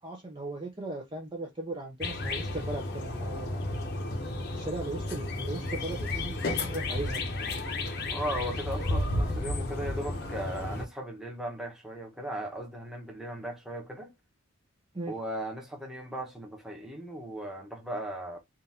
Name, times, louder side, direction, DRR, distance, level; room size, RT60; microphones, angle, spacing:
voice 1, 0.0-3.6 4.5-7.2 14.9-15.2, right 2 dB, 20° right, 0.7 m, -38 dB
sound 1, 2.0-10.9, left 2 dB, 50° left, 1.0 m, -32 dB
voice 2, 8.1-14.1 15.1-18.4, right 1 dB, ahead, 1.0 m, -37 dB
3.7 x 2.7 x 4.2 m
head